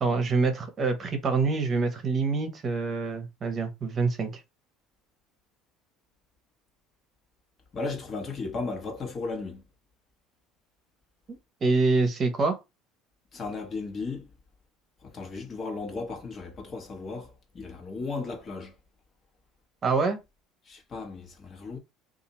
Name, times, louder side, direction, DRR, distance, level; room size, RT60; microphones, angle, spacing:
voice 1, 0.0-4.3 11.3-12.6 19.8-20.2, right 4 dB, 40° right, 0.9 m, -26 dB
voice 2, 7.7-9.6 13.3-14.3 15.0-18.7 20.7-21.8, left 3 dB, 40° left, 1.2 m, -35 dB
2.7 x 2.5 x 4.1 m
hypercardioid pair, 80°, 0 cm